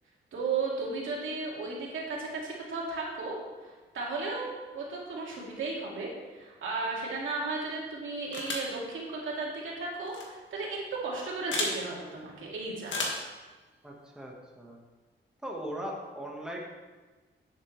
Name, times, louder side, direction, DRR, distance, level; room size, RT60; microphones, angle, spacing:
voice 1, 0.3-4.5 4.7-13.0, right 3 dB, 90° right, -3 dB, 2.4 m, -35 dB
sound 1, 8.3-8.8 10.1-10.2 11.5-11.8 12.9-13.3, left 2 dB, 75° left, 1.7 m, -32 dB
voice 2, 13.8-14.8 15.4-16.6, equal, 5° right, -2 dB, 1.4 m, -39 dB
10.5 x 7.9 x 3.2 m, 1.3 s
wide cardioid pair, 135°, 20 cm